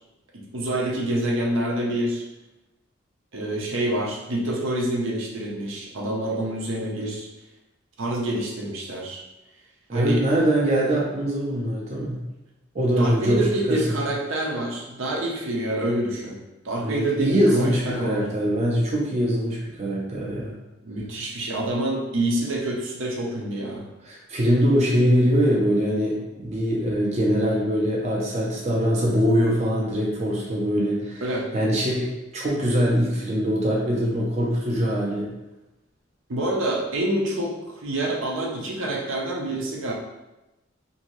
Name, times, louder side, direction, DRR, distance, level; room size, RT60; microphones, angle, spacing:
voice 1, 0.3-2.2 3.3-7.3 8.0-9.2 9.9-10.2 13.0-16.4 16.6-18.2 20.8-23.8 31.2-31.5 36.3-39.9, right 1 dB, 75° right, -2 dB, 0.6 m, -27 dB
voice 2, 9.9-12.2 12.7-13.8 16.8-20.5 24.1-31.2 31.5-35.3, equal, 35° right, -4 dB, 0.5 m, -23 dB
2.7 x 2.6 x 3.0 m, 0.99 s
head